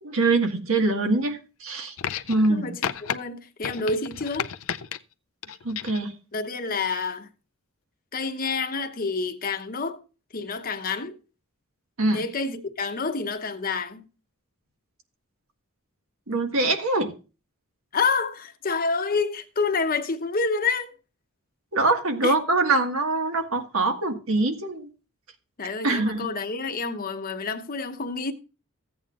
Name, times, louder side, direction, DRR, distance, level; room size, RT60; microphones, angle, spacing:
voice 1, 0.0-1.9 2.3-2.7 5.6-6.1 12.0-12.2 16.3-17.1 21.7-24.9 25.8-26.3, right 2 dB, 75° right, 1.6 m, -24 dB
sound 1, 2.0-2.5 2.8-3.2 3.6-5.0 5.4-6.1 7.1-7.2, left 8 dB, 70° left, 0.5 m, -32 dB
voice 2, 3.0-4.5 6.3-7.3 8.1-10.0 10.3-11.2 12.1-14.0 17.9-20.9 22.2-22.3 25.6-28.3, left 4 dB, 45° left, 0.9 m, -28 dB
15.5 x 8.6 x 2.4 m
head